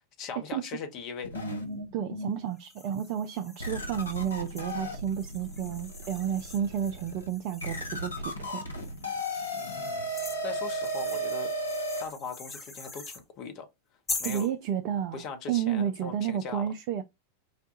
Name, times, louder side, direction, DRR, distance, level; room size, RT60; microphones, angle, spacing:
voice 1, 0.2-1.4 9.5-10.1 10.4-11.5 12.0-13.7 14.2-14.5 15.1-16.7, left 5 dB, 40° left, 0.9 m, -40 dB
sound 1, 1.2-2.4 3.0-3.1 3.6-12.1, right 1 dB, 75° left, 0.9 m, -35 dB
voice 2, 1.9-8.1 8.4-8.6 14.2-15.2 15.5-17.0, right 9 dB, 45° right, 0.4 m, -31 dB
sound 2, 2.6-8.1 8.8-13.2 14.1-14.5, left 3 dB, 15° left, 1.1 m, -43 dB
4.9 x 2.2 x 2.7 m
figure-of-eight pair, 90°, 0 cm